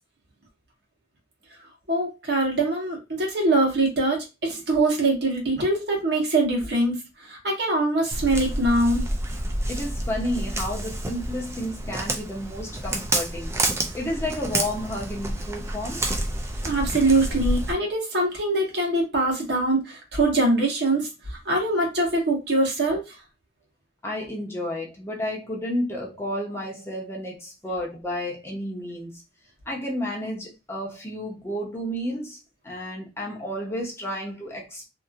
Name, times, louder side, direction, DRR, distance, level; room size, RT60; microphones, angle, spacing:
voice 1, 1.9-9.0 16.6-23.0, right 2 dB, 65° right, 1.2 m, -23 dB
Walk footsteps, 8.1-17.7, right 1 dB, 15° right, 0.4 m, -29 dB
voice 2, 9.7-16.0 24.0-29.2 29.7-32.4 32.6-34.9, left 1 dB, 15° left, 0.8 m, -31 dB
2.8 x 2.6 x 2.5 m
head